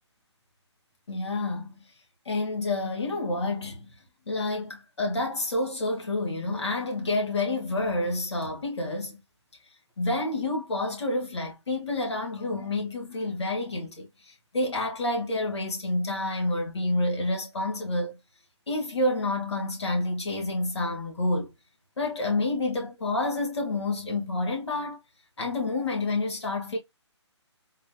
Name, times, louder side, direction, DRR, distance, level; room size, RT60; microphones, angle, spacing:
voice 1, 1.1-1.8 2.3-3.9 4.3-9.2 10.0-14.1 14.5-18.2 18.7-21.5 22.0-25.0 25.4-26.8, left 2 dB, 65° left, 2.0 m, -28 dB
4.3 x 3.3 x 2.2 m
figure-of-eight pair, 140°, 15 cm